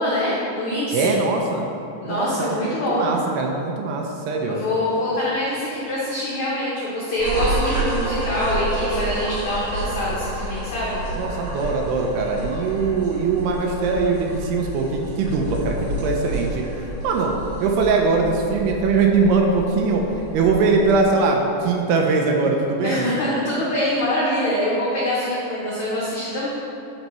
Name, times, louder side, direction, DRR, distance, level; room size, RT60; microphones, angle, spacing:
voice 1, 0.0-1.2 2.0-3.1 4.5-11.0 22.8-26.5, left 1 dB, 85° left, -7 dB, 1.5 m, -24 dB
voice 2, 0.9-1.7 2.0-4.6 11.2-16.6 17.0-17.3 17.6-20.0 20.3-23.1, right 4 dB, 80° right, 1 dB, 2.5 m, -21 dB
sound 1, 7.2-21.0, right 1 dB, 50° right, 2.1 m, -29 dB
10.5 x 5.3 x 3.0 m, 2.7 s
omnidirectional pair, 4.9 m